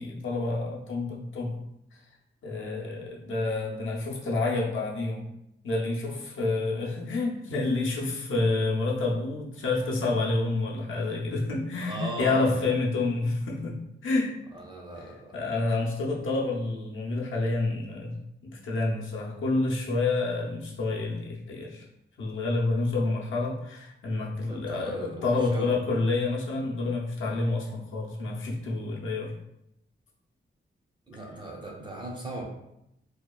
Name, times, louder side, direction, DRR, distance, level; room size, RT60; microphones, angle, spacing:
voice 1, 0.0-1.6 2.4-5.3 5.6-14.3 15.3-18.1 18.4-21.8 22.2-29.3, left 3 dB, 90° left, -2 dB, 0.5 m, -28 dB
voice 2, 11.8-12.6 14.5-15.4 24.4-25.7 31.1-32.4, right 2 dB, 25° right, -1 dB, 0.5 m, -38 dB
2.8 x 2.2 x 2.2 m, 0.83 s
wide cardioid pair, 140°, 20 cm